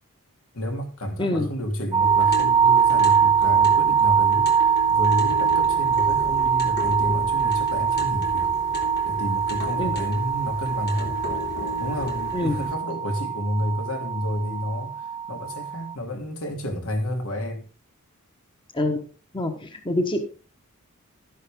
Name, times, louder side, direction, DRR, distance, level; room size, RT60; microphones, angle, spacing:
voice 1, 0.5-4.5 4.9-8.5 9.0-11.2 11.7-17.7, equal, 75° left, 2.8 m, -30 dB
sound 1, 1.9-15.9, right 7 dB, 20° right, 0.5 m, -23 dB
sound 2, 2.0-12.7, left 2 dB, 50° left, 2.8 m, -35 dB
voice 2, 19.3-20.2, left 1 dB, 20° left, 1.3 m, -25 dB
12.5 x 10.5 x 3.6 m
head